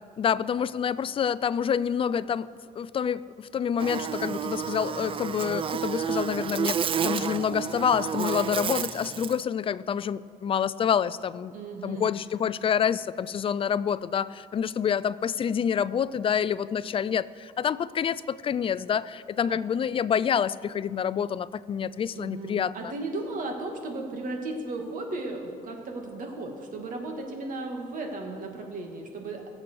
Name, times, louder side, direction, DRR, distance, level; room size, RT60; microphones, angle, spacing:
voice 1, 0.2-2.5 2.8-11.5 11.8-22.9, left 8 dB, 35° left, 18 dB, 0.4 m, -27 dB
Buzz, 3.8-9.4, right 7 dB, 30° right, 0.4 m, -30 dB
voice 2, 11.5-12.1 19.5-19.6 22.1-29.4, right 2 dB, 50° right, 2 dB, 2.3 m, -35 dB
21.5 x 7.6 x 4.7 m, 2.2 s
cardioid pair, 110°, 17 cm